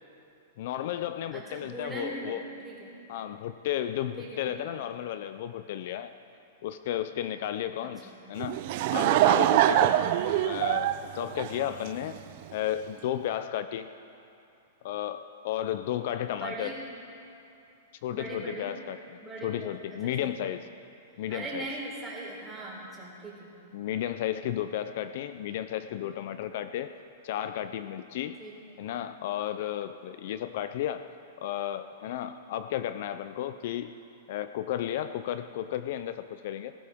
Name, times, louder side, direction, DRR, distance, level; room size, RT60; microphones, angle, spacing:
voice 1, 0.6-2.4 3.1-6.1 6.6-8.6 8.9-10.0 10.4-12.2 12.5-13.9 14.8-16.7 18.0-20.7 21.2-21.7 23.7-26.9 27.2-28.4 28.8-31.0 31.4-34.0 34.3-36.7, left 11 dB, 55° left, 11 dB, 0.4 m, -33 dB
voice 2, 1.3-2.4 2.6-2.9 4.2-4.4 7.8-8.1 11.8-11.9 16.3-16.8 18.1-18.7 19.2-19.7 20.2-20.3 21.3-23.5 28.4-28.5, right 2 dB, 10° right, -5 dB, 3.8 m, -40 dB
Laughter / Crowd, 8.4-12.2, right 13 dB, 45° right, 0.5 m, -24 dB
21.0 x 14.0 x 3.6 m, 2.7 s
supercardioid pair, 160°, 0 cm